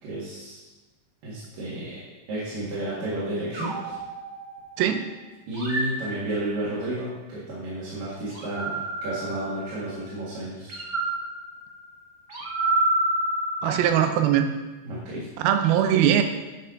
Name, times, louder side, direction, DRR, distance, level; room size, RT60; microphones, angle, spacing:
voice 1, 0.0-0.6 1.2-2.0 2.3-4.0 5.5-10.8 14.8-15.3, right 1 dB, 65° right, -9 dB, 3.6 m, -32 dB
sound 1, 3.5-4.9 5.5-6.8 8.3-10.0 10.7-14.2, right 2 dB, 45° right, 1.5 m, -29 dB
voice 2, 13.6-14.5 15.4-16.2, right 10 dB, 85° right, 7 dB, 2.6 m, -21 dB
11.0 x 5.6 x 3.9 m, 1.2 s
omnidirectional pair, 4.3 m